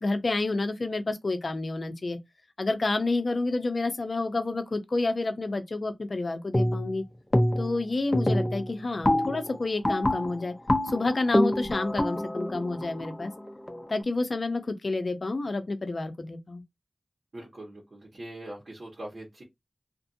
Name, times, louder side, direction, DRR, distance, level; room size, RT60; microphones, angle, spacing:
voice 1, 0.0-2.2 2.6-7.0 7.6-10.5 10.8-13.3 13.9-16.6, left 2 dB, 60° left, 0.6 m, -29 dB
sound 1, 6.5-7.0 7.3-7.8 8.1-13.9, left 1 dB, 25° left, 0.7 m, -27 dB
voice 2, 17.3-19.4, right 1 dB, 60° right, 1.2 m, -42 dB
2.6 x 2.5 x 2.6 m
cardioid pair, 45°, 0 cm